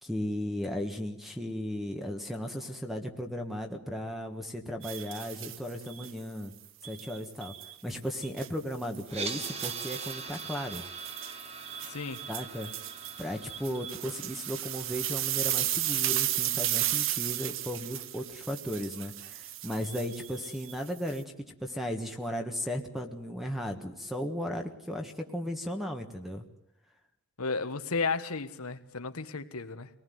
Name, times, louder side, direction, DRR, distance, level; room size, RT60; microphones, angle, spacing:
voice 1, 0.0-6.5 6.8-7.5 7.8-10.9 12.3-12.7 13.2-26.4, equal, ahead, 5 dB, 1.5 m, -36 dB
sound 1, 4.8-6.1 6.8-7.7 8.2-8.5 8.9-21.2, right 13 dB, 60° right, 0.9 m, -34 dB
sound 2, 9.1-19.2, right 4 dB, 30° right, 1.5 m, -44 dB
voice 2, 11.9-12.2 27.4-29.9, left 4 dB, 85° left, 9 dB, 1.5 m, -33 dB
24.5 x 19.0 x 9.4 m, 0.80 s
head